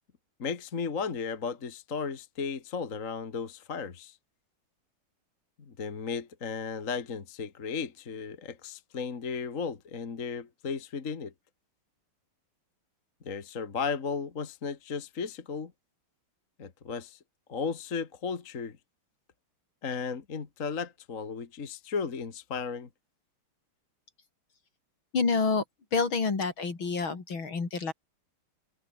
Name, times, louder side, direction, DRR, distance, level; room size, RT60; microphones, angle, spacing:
voice 1, 0.4-4.2 5.6-11.3 13.2-15.7 16.6-17.2 17.5-18.8 19.8-22.9, left 5 dB, 40° left, 2.0 m, -35 dB
voice 2, 25.1-25.6 25.9-27.9, left 4 dB, 65° left, 4.4 m, -28 dB
omnidirectional pair, 2.4 m